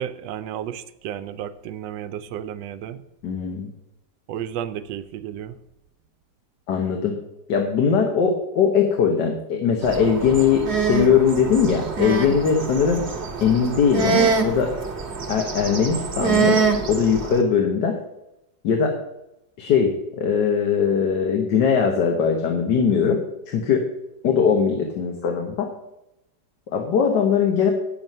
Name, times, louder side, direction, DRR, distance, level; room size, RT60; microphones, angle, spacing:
voice 1, 0.0-3.0 4.3-5.6, right 10 dB, 85° right, 12 dB, 1.3 m, -32 dB
voice 2, 3.2-3.7 6.7-7.1 7.5-13.0 13.4-14.7 15.3-16.6 16.9-18.0 18.6-19.0 19.6-23.2 23.5-23.9 24.2-25.7 26.7-27.7, left 6 dB, 70° left, 3 dB, 1.6 m, -20 dB
sound 1, 9.8-17.4, right 5 dB, 40° right, 1.5 m, -25 dB
9.1 x 7.8 x 5.4 m, 0.88 s
omnidirectional pair, 1.9 m